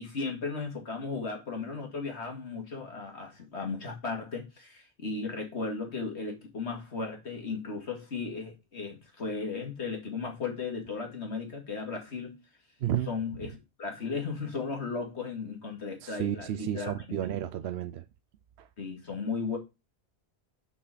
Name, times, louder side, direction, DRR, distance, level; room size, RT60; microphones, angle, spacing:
voice 1, 0.0-12.4 13.1-16.9 18.8-19.6, left 4 dB, 85° left, 2.4 m, -35 dB
voice 2, 12.8-13.1 16.0-18.0 18.6-18.7, right 11 dB, 75° right, 0.9 m, -32 dB
6.1 x 5.8 x 4.2 m
omnidirectional pair, 1.1 m